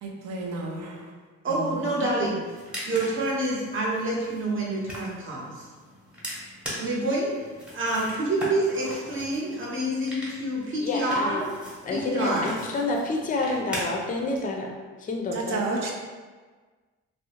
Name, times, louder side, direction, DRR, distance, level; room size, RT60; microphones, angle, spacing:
voice 1, 0.0-1.2 1.5-2.1 15.3-15.9, right 3 dB, 60° right, 0 dB, 0.5 m, -32 dB
voice 2, 1.4-2.4 2.8-5.7 6.8-7.3 7.7-11.5 11.9-12.5, right 1 dB, 45° right, -4 dB, 0.8 m, -27 dB
sound 1, 2.4-14.4, equal, 5° right, 0.8 m, -40 dB
voice 3, 10.8-11.4 11.8-14.7 15.0-15.6, left 3 dB, 25° left, 1 dB, 0.4 m, -28 dB
2.6 x 2.1 x 2.8 m, 1.4 s
cardioid pair, 90°, 30 cm